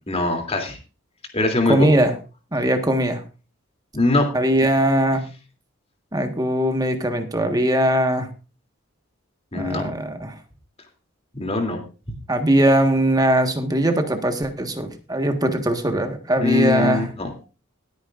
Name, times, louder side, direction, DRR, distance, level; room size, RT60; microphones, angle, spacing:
voice 1, 0.1-0.8 1.3-1.9 3.9-4.3 9.5-9.9 11.4-11.8 16.4-17.3, left 2 dB, 30° left, 3 dB, 3.0 m, -22 dB
voice 2, 1.7-2.1 2.5-3.2 4.3-5.2 6.1-8.3 9.5-10.4 12.3-17.1, right 1 dB, 20° right, 6 dB, 1.5 m, -20 dB
20.5 x 9.3 x 2.5 m, 0.33 s
head